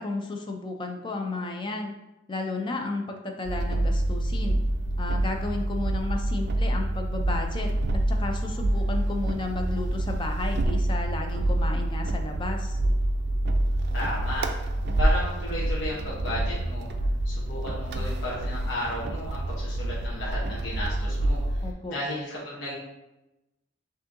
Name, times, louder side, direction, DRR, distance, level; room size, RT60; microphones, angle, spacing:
voice 1, 0.0-1.9 2.3-4.6 5.0-12.8 21.6-22.0, left 2 dB, 25° left, 3 dB, 0.4 m, -33 dB
sound 1, 3.4-21.7, right 1 dB, 55° right, 0.4 m, -27 dB
voice 2, 13.9-14.7 15.0-16.9 17.2-21.4 21.9-22.7, left 1 dB, 60° left, -7 dB, 0.9 m, -33 dB
6.0 x 2.7 x 2.6 m, 0.97 s
head